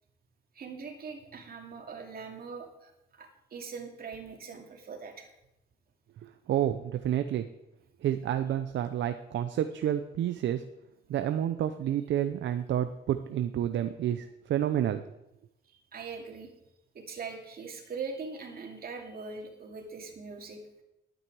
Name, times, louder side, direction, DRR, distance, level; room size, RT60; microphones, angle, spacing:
voice 1, 0.5-5.3 15.9-16.5 16.9-20.6, right 5 dB, 50° right, 2 dB, 2.5 m, -41 dB
voice 2, 6.5-7.5 8.0-10.6 11.1-15.0, right 11 dB, 70° right, 9 dB, 0.7 m, -29 dB
12.0 x 9.1 x 4.8 m, 0.88 s
cardioid pair, 90°, 20 cm